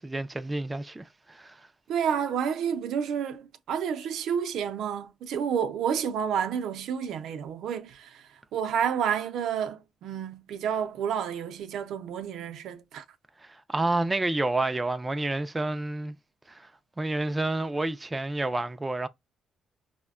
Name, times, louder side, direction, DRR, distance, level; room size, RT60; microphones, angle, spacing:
voice 1, 0.0-1.6 13.4-16.2 16.5-16.7 17.0-19.1, right 2 dB, 15° right, 0.3 m, -29 dB
voice 2, 1.9-8.2 8.5-13.0, right 8 dB, 80° right, 0.5 m, -30 dB
4.8 x 2.1 x 2.3 m
cardioid pair, 90°, 0 cm